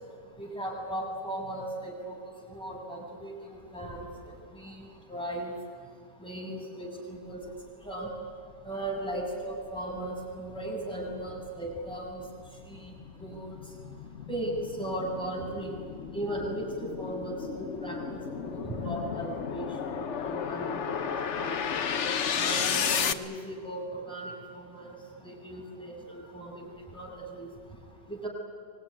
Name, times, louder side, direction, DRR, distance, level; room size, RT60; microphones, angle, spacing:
voice 1, 0.4-2.2 2.5-4.0 4.5-5.5 6.2-7.4 7.8-8.1 8.6-12.2 12.7-12.9 13.2-13.5 14.3-15.8 16.1-21.8 22.3-24.9 25.2-27.5 28.1-28.3, right 1 dB, 5° left, -1 dB, 6.6 m, -37 dB
sound 1, 8.4-8.5 9.0-23.1, left 7 dB, 50° left, 1.0 m, -34 dB
25.0 x 21.5 x 9.9 m, 2.1 s
omnidirectional pair, 2.0 m